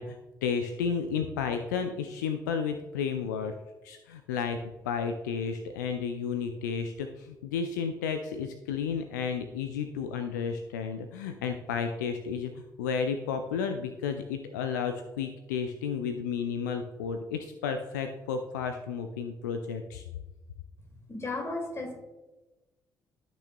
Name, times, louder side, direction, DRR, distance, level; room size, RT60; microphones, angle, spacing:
voice 1, 0.0-3.5 3.8-4.6 4.8-20.0, left 6 dB, 75° left, 7 dB, 0.4 m, -32 dB
voice 2, 21.1-22.0, left 2 dB, 25° left, 3 dB, 2.2 m, -34 dB
13.0 x 6.1 x 2.2 m, 1.1 s
figure-of-eight pair, 45°, 10 cm